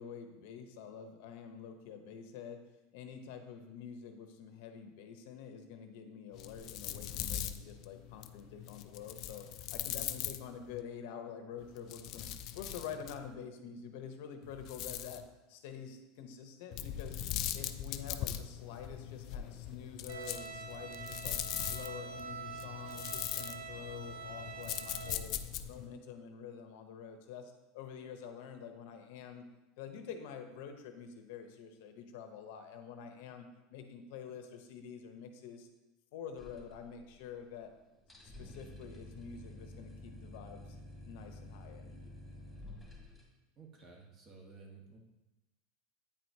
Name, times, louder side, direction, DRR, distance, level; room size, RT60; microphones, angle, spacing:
voice 1, 0.0-2.6 2.9-9.4 9.7-12.3 12.5-15.2 15.5-17.2 17.5-21.4 21.7-25.4 25.7-29.4 29.8-35.7 36.1-37.7 38.2-40.7 41.1-42.0, left 7 dB, 70° left, 6 dB, 0.7 m, -47 dB
sound 1, 6.3-10.8 11.6-13.3 14.4-15.3 16.7-25.9, left 11 dB, 50° left, 0.3 m, -41 dB
Bowed string instrument, 20.1-25.1, right 6 dB, 75° right, 0.8 m, -45 dB
sound 2, 36.4-37.4 37.6-37.7 38.0-43.2, left 1 dB, ahead, 1.6 m, -50 dB
voice 2, 43.6-45.0, right 4 dB, 35° right, 0 dB, 1.3 m, -54 dB
8.9 x 4.5 x 2.7 m, 1.0 s
supercardioid pair, 130°, 0 cm